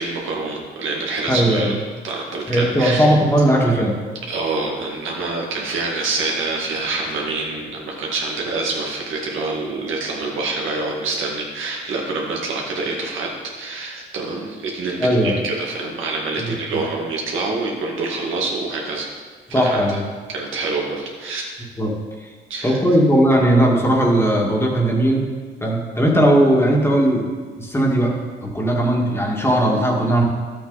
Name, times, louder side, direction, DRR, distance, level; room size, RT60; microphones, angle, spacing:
voice 1, 0.0-1.8 2.0-3.0 4.3-13.3 13.6-19.1 19.5-19.8 20.3-21.5 22.5-22.8, right 3 dB, 80° right, -2 dB, 2.1 m, -26 dB
voice 2, 1.3-1.8 2.5-4.0 15.0-15.4 16.4-16.5 19.5-20.1 21.8-22.3 22.6-25.3 25.6-27.3 27.6-30.2, right 1 dB, 10° left, -1 dB, 2.1 m, -18 dB
11.5 x 7.9 x 4.1 m, 1.5 s
cardioid pair, 90°, 20 cm